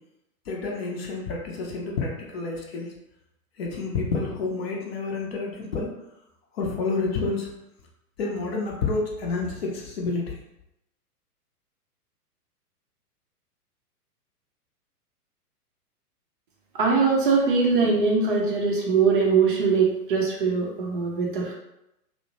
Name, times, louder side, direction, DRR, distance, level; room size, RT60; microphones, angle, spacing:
voice 1, 0.5-2.9 3.6-5.9 6.6-7.5 8.2-10.4, left 3 dB, 40° left, -1 dB, 0.6 m, -29 dB
voice 2, 16.7-21.5, right 4 dB, 35° right, -2 dB, 0.5 m, -22 dB
2.7 x 2.1 x 2.8 m, 0.86 s
figure-of-eight pair, 110°, 46 cm